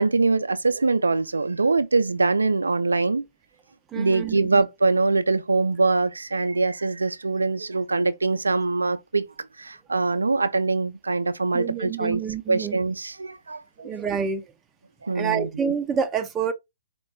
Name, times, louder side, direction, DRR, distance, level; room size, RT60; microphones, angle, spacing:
voice 1, 0.0-3.2 3.9-12.2 12.5-13.9 15.0-15.5, right 3 dB, 80° right, 0.3 m, -23 dB
voice 2, 3.9-4.6 11.5-12.8 13.8-14.4 15.1-16.5, right 7 dB, 15° right, 0.4 m, -28 dB
4.4 x 2.2 x 3.2 m
figure-of-eight pair, 125°, 0 cm